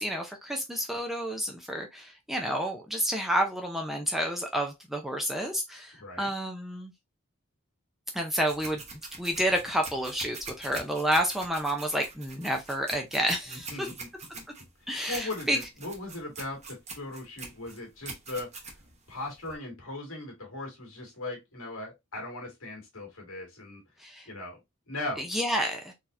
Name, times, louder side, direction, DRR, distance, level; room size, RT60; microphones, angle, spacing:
voice 1, 0.0-6.9 8.1-13.9 14.9-15.6 24.0-24.3 25.2-25.9, equal, ahead, 0.4 m, -30 dB
voice 2, 6.0-6.3 13.5-14.1 14.3-14.5 14.9-18.5 19.1-23.8 24.3-24.6 24.9-25.2, left 2 dB, 70° left, 1.9 m, -38 dB
sound 1, 8.4-19.6, right 4 dB, 30° right, 0.9 m, -44 dB
3.9 x 2.8 x 2.4 m
head